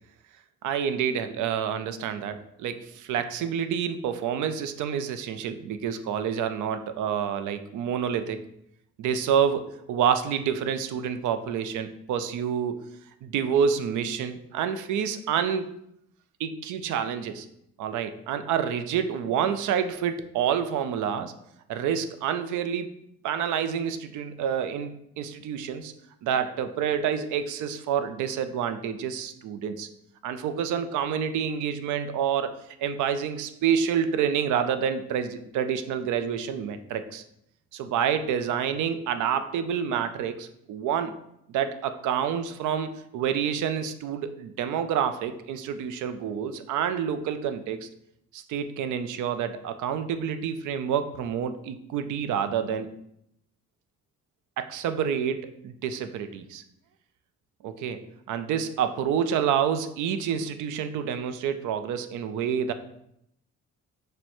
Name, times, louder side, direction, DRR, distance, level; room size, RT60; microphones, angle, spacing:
voice 1, 0.6-8.4 9.0-12.8 13.2-15.7 16.4-17.5 17.8-21.3 21.7-22.9 23.2-25.9 26.2-29.9 30.2-37.2 37.7-41.1 41.5-47.9 48.3-52.9 54.6-56.6 57.6-58.0 58.3-62.7, right 8 dB, 80° right, 10 dB, 0.5 m, -28 dB
6.2 x 2.2 x 3.0 m, 0.77 s
cardioid pair, 90°, 30 cm